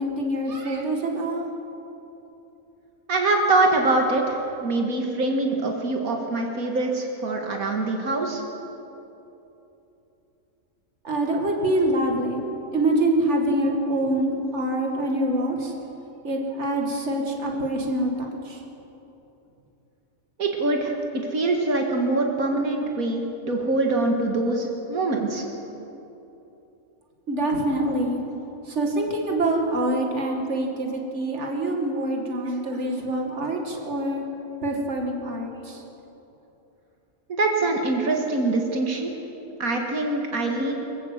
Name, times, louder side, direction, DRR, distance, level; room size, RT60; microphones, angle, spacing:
voice 1, 0.0-1.5 11.0-15.7 16.2-18.6 27.3-28.2 28.7-34.2 34.6-35.8, right 1 dB, 55° right, 1 dB, 2.6 m, -25 dB
voice 2, 3.1-8.4 20.4-25.5 37.4-39.1 39.6-40.7, right 2 dB, 80° right, 1 dB, 2.3 m, -24 dB
23.5 x 14.5 x 8.1 m, 3.0 s
omnidirectional pair, 1.5 m